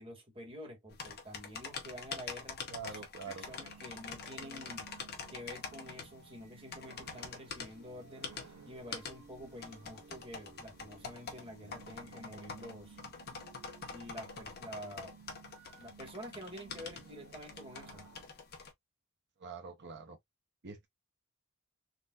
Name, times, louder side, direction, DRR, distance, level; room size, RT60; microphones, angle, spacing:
voice 1, 0.0-2.6 2.9-4.9 5.3-13.0 13.9-15.2 15.8-18.0, equal, 25° right, 1.5 m, -48 dB
sound 1, 0.9-18.7, left 5 dB, 45° left, 0.9 m, -46 dB
voice 2, 2.7-3.5 13.3-13.4 19.4-20.2 20.6-20.9, right 5 dB, 50° right, 0.7 m, -45 dB
sound 2, 3.4-18.3, right 4 dB, 85° right, 1.2 m, -56 dB
4.0 x 2.6 x 2.3 m
head